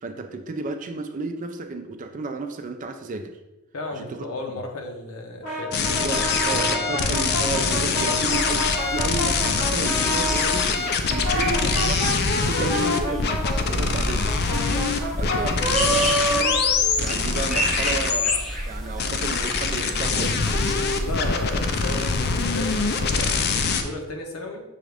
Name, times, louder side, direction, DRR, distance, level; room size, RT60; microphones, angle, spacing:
voice 1, 0.0-3.4 3.9-4.3 5.9-13.4 13.7-14.3 14.7-14.9 15.1-16.6 17.0-20.6, right 3 dB, 35° right, 6 dB, 0.4 m, -32 dB
voice 2, 3.7-6.9 13.7-14.0 21.0-24.6, left 2 dB, 70° left, 2 dB, 0.8 m, -34 dB
Brass instrument, 5.4-10.6 11.1-17.4, right 1 dB, 90° left, 1.1 m, -28 dB
sound 1, 5.7-18.4 19.0-23.8, left 5 dB, 45° left, 0.4 m, -24 dB
sound 2, 8.3-23.6, equal, ahead, 0.6 m, -32 dB
6.2 x 2.4 x 3.3 m, 1.0 s
head